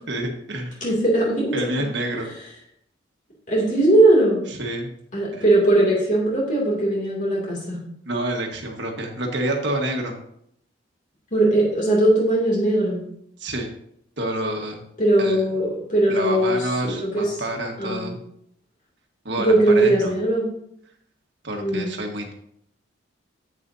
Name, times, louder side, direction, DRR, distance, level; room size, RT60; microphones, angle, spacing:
voice 1, 0.1-0.7 1.5-2.3 4.5-4.9 5.3-5.4 8.0-10.1 13.4-13.7 14.2-14.8 15.2-15.4 16.1-18.2 19.2-20.1 21.4-22.3, right 1 dB, 60° right, 2 dB, 1.5 m, -28 dB
voice 2, 0.8-1.6 2.1-2.3 3.5-4.4 5.1-7.8 11.3-13.0 15.0-17.3 17.8-18.1 19.4-20.5 21.6-21.9, right 1 dB, 40° left, -4 dB, 2.6 m, -19 dB
9.9 x 8.3 x 2.7 m, 0.71 s
head